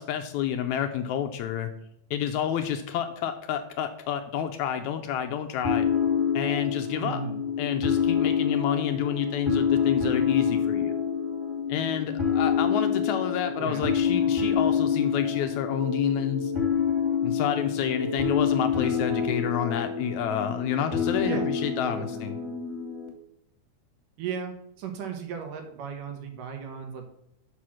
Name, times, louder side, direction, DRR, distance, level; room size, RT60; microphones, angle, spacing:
voice 1, 0.0-1.7 2.1-5.9 6.3-7.2 7.6-11.0 11.7-16.5 17.2-22.4, left 9 dB, 80° left, 7 dB, 1.8 m, -29 dB
sound 1, 5.6-23.1, left 7 dB, 10° right, 1.3 m, -27 dB
voice 2, 7.0-7.4 13.6-13.9 21.2-21.5 21.9-22.2 24.2-27.1, right 7 dB, 80° right, 4 dB, 2.9 m, -35 dB
6.8 x 5.8 x 6.3 m, 0.77 s
omnidirectional pair, 3.7 m